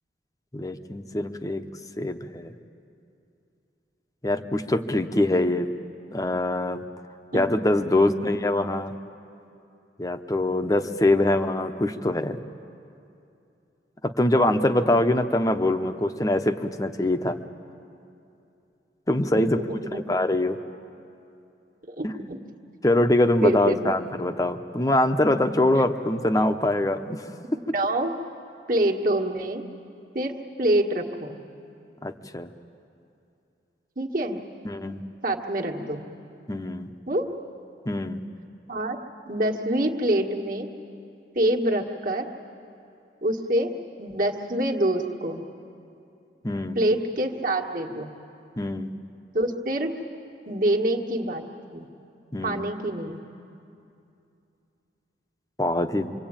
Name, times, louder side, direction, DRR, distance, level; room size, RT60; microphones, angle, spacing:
voice 1, 0.5-1.6 2.0-2.5 4.2-5.7 6.1-6.8 7.3-8.9 10.0-12.4 14.0-17.4 19.1-19.6 19.9-20.6 22.0-22.1 22.8-27.3 32.0-32.5 34.6-35.0 36.5-36.9 37.9-38.2 46.4-46.8 48.6-48.9 52.3-52.7 55.6-56.1, left 1 dB, 20° left, 8 dB, 0.8 m, -23 dB
voice 2, 7.9-8.3 19.3-20.0 22.0-22.4 23.4-24.2 25.7-25.8 27.7-28.1 28.7-29.6 30.1-30.3 30.6-31.4 34.0-34.4 35.2-36.1 37.1-37.3 38.7-39.0 39.3-40.7 41.3-42.3 43.2-43.7 44.0-45.4 46.7-48.1 49.3-50.0 50.5-51.4 51.7-51.9 52.4-53.2, right 1 dB, 50° right, 1 dB, 1.7 m, -26 dB
26.5 x 24.0 x 8.9 m, 2.7 s
head